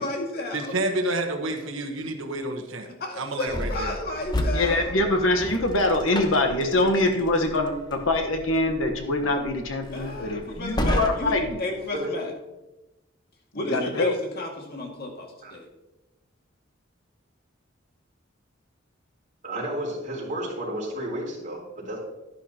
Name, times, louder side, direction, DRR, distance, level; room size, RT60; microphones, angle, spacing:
voice 1, 0.0-0.8 2.8-5.0 9.9-12.3 13.5-15.7, left 1 dB, 50° left, 0 dB, 2.1 m, -33 dB
voice 2, 0.5-2.9 3.2-4.0, right 2 dB, 80° right, 4 dB, 1.2 m, -29 dB
sound 1, 3.5-11.5, left 1 dB, 20° left, 1.0 m, -32 dB
voice 3, 4.5-11.6 13.7-14.1, left 2 dB, 90° left, 4 dB, 1.2 m, -24 dB
voice 4, 19.4-22.0, right 1 dB, 40° right, -4 dB, 4.1 m, -32 dB
11.5 x 11.0 x 2.9 m, 1.0 s
head